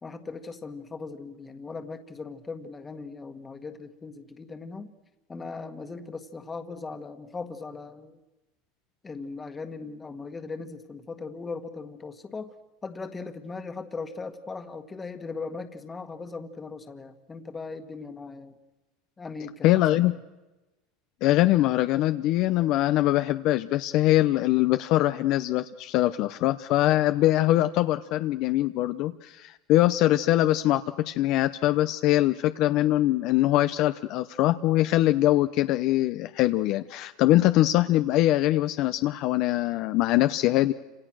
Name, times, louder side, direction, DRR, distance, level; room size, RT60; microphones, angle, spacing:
voice 1, 0.0-4.9 5.3-8.2 9.0-12.5 12.8-18.6 19.2-19.8, left 4 dB, 15° left, 7 dB, 1.7 m, -38 dB
voice 2, 19.6-20.1 21.2-40.7, left 15 dB, 50° left, 9 dB, 0.8 m, -23 dB
29.5 x 27.0 x 6.4 m, 1.1 s
supercardioid pair, 150°, 0 cm